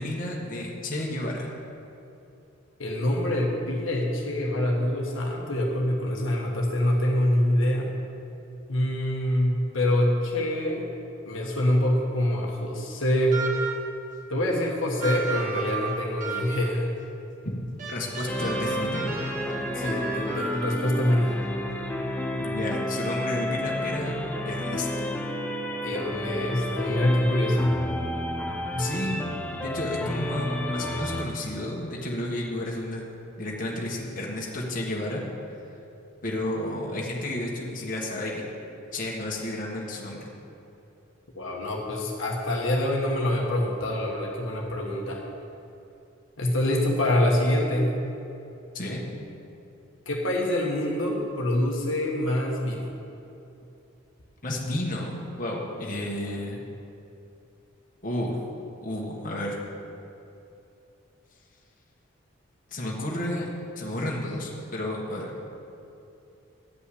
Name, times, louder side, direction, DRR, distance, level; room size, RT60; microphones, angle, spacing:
voice 1, 0.0-1.5 17.4-17.5 17.9-19.2 22.4-24.1 24.4-24.9 28.8-33.1 33.4-35.2 36.2-38.4 38.9-40.3 48.7-49.0 54.4-56.6 58.0-58.4 58.8-59.6 62.7-63.5 63.7-65.3, left 1 dB, 40° left, -3 dB, 1.5 m, -31 dB
voice 2, 2.8-7.9 8.7-10.9 11.3-13.4 14.3-16.9 19.7-21.4 25.8-27.8 28.7-28.9 41.3-45.2 46.4-47.9 50.1-52.9, left 1 dB, 70° left, -2 dB, 1.3 m, -25 dB
sound 1, 13.3-14.0 15.0-16.8 17.8-21.0, right 4 dB, 40° right, 1.2 m, -34 dB
sound 2, 18.3-31.3, left 1 dB, 5° left, 0.6 m, -31 dB
11.0 x 5.6 x 8.4 m, 2.8 s
head